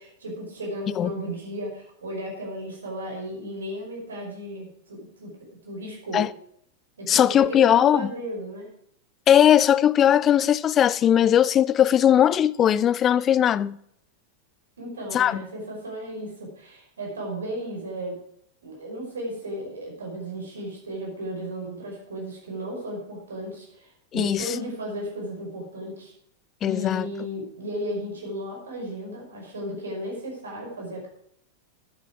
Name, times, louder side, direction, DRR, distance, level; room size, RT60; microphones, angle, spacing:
voice 1, 0.0-5.3 5.7-6.2 7.0-8.7 14.8-18.2 18.6-26.1 26.6-31.1, equal, 70° right, 5.3 m, -34 dB
voice 2, 7.1-8.1 9.3-13.8 15.1-15.4 24.1-24.6 26.6-27.1, left 10 dB, 30° left, 0.5 m, -19 dB
11.5 x 10.5 x 4.7 m
figure-of-eight pair, 90°, 0 cm